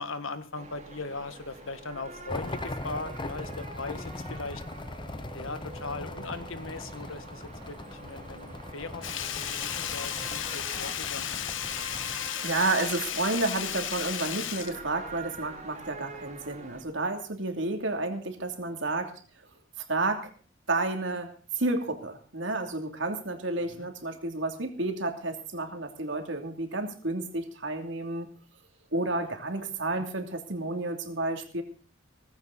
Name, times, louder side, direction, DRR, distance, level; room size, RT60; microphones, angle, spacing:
voice 1, 0.0-4.6 5.3-9.0 9.5-11.4 23.5-23.9 29.3-29.4 30.0-30.1, left 3 dB, 90° left, 10 dB, 1.7 m, -39 dB
sound 1, 0.5-16.8, right 3 dB, 35° right, 2.7 m, -46 dB
sound 2, 2.3-12.3, left 2 dB, 25° left, 0.8 m, -41 dB
Sink (filling or washing), 9.0-15.5 15.9-16.0, left 10 dB, 75° left, 1.1 m, -34 dB
voice 2, 11.9-19.1 19.9-20.3 20.7-28.3 28.9-31.6, right 2 dB, 70° right, 4 dB, 2.8 m, -31 dB
17.5 x 15.5 x 4.1 m, 0.39 s
head